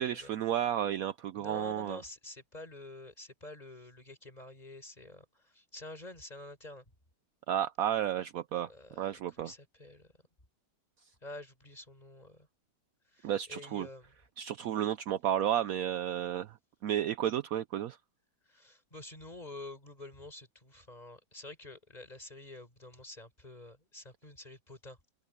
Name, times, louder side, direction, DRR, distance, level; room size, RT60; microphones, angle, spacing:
voice 1, 0.0-2.0 7.5-8.7 9.0-9.5 13.2-13.9 14.4-16.6 16.8-18.0, right 10 dB, 75° right, 0.8 m, -32 dB
voice 2, 1.3-6.8 8.7-10.1 11.2-12.5 13.1-14.1 18.4-25.0, left 2 dB, 20° left, 5.1 m, -48 dB
open air
omnidirectional pair, 2.1 m